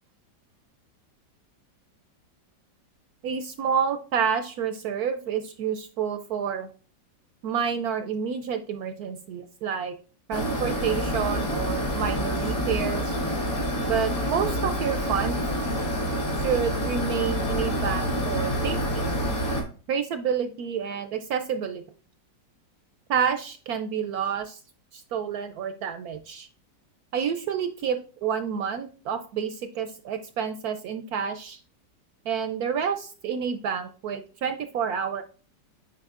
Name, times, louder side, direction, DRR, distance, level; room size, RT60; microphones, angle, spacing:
voice 1, 3.2-6.7 7.4-9.9 10.3-13.2 13.8-15.4 16.4-19.2 19.9-21.8 23.1-24.6 24.9-26.5 27.1-31.6 32.3-35.2, right 7 dB, 70° right, 9 dB, 1.0 m, -29 dB
sound 1, 10.3-19.6, equal, 50° left, 2.4 m, -27 dB
8.6 x 4.9 x 2.4 m, 0.39 s
omnidirectional pair, 1.9 m